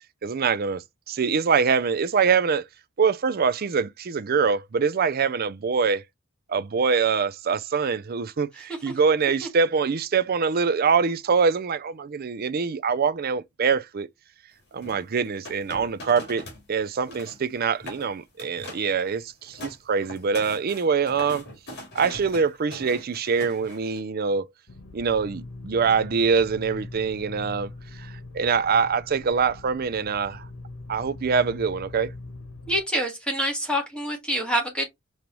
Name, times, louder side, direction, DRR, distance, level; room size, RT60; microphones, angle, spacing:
voice 1, 0.2-2.6 3.0-6.0 6.5-14.1 14.7-16.4 16.7-21.4 21.9-24.5 24.9-30.5 30.9-32.1, right 5 dB, 45° right, 0.5 m, -24 dB
sound 1, 14.8-16.6 16.9-17.4 17.7-18.1 18.4-18.9 19.3-24.0, left 1 dB, 50° left, 2.3 m, -41 dB
sound 2, 24.7-32.8, left 2 dB, 80° left, 1.2 m, -41 dB
voice 2, 32.7-34.9, equal, 5° left, 1.8 m, -26 dB
5.2 x 3.1 x 3.0 m
head